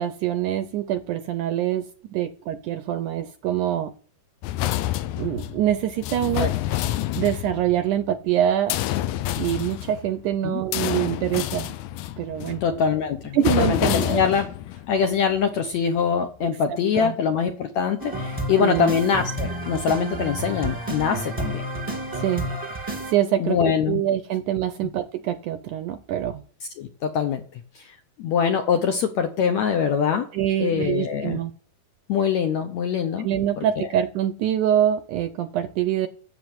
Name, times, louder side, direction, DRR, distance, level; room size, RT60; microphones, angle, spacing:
voice 1, 0.0-3.9 5.2-6.5 7.2-8.8 9.4-11.8 12.2-12.6 13.3-14.2 16.4-17.1 18.6-18.9 22.1-22.5 23.1-23.6 23.9-26.4 30.3-31.5 33.2-36.1, right 11 dB, 75° right, 11 dB, 1.9 m, -25 dB
sound 1, 4.4-8.3 8.7-15.4 15.9-16.0, left 14 dB, 90° left, 1.7 m, -28 dB
voice 2, 12.6-14.5 14.9-21.6 23.4-24.0 26.8-27.4 27.8-27.9 28.2-30.3 30.6-31.4 32.1-33.3 33.6-33.9, left 7 dB, 70° left, 6 dB, 1.7 m, -23 dB
sound 2, 18.0-23.1, right 1 dB, 10° right, 1.3 m, -30 dB
10.5 x 6.9 x 7.9 m, 0.43 s
omnidirectional pair, 4.2 m